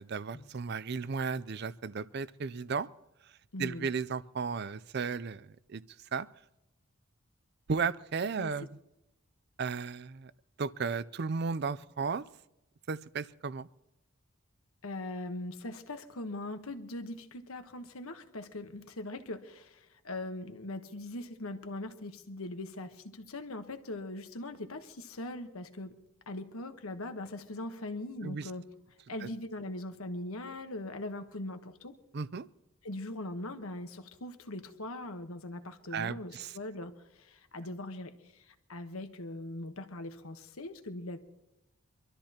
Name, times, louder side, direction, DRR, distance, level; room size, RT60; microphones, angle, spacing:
voice 1, 0.0-2.9 3.6-5.8 6.1-6.3 7.7-8.7 9.6-10.3 10.6-12.2 12.9-13.7 28.2-28.5 29.2-29.3 32.1-32.5 35.9-36.5, right 5 dB, 50° right, 17 dB, 0.5 m, -34 dB
voice 2, 3.5-3.9 8.4-8.5 14.8-25.9 26.3-28.7 29.1-31.9 32.8-41.2, left 2 dB, 80° left, 7 dB, 1.2 m, -41 dB
25.0 x 13.0 x 2.9 m, 0.92 s
head